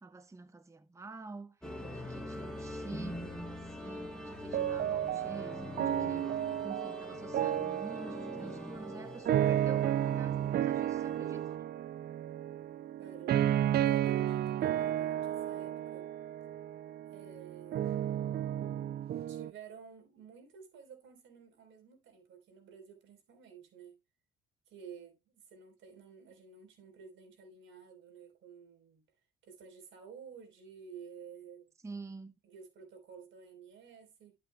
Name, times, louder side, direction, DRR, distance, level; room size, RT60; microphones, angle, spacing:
voice 1, 0.0-11.5 31.8-32.3, right 3 dB, 15° right, 0.8 m, -48 dB
sound 1, 1.6-11.6, left 1 dB, 5° left, 3.4 m, -44 dB
sound 2, 4.5-19.5, right 11 dB, 55° right, 0.4 m, -33 dB
voice 2, 13.0-13.4 13.8-16.1 17.1-18.1 19.3-24.0 24.7-29.0 29.4-31.7 32.4-34.4, right 7 dB, 75° right, 3.7 m, -52 dB
12.0 x 7.8 x 2.2 m
cardioid pair, 90°, 20 cm